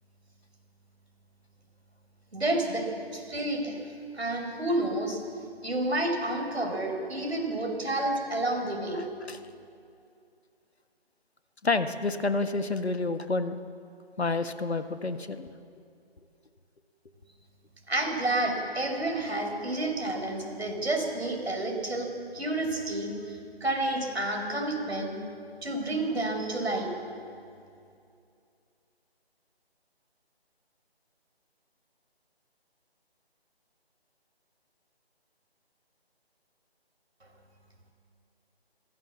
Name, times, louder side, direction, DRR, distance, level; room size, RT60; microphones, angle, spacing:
voice 1, 2.3-2.9 3.1-3.7 4.1-5.2 5.6-9.0 17.9-25.1 25.6-26.9, right 1 dB, 75° right, 2 dB, 5.6 m, -30 dB
voice 2, 8.9-9.4 11.6-13.6 14.2-15.5, left 3 dB, 75° left, 9 dB, 1.6 m, -29 dB
22.5 x 16.0 x 7.4 m, 2.4 s
figure-of-eight pair, 155°, 32 cm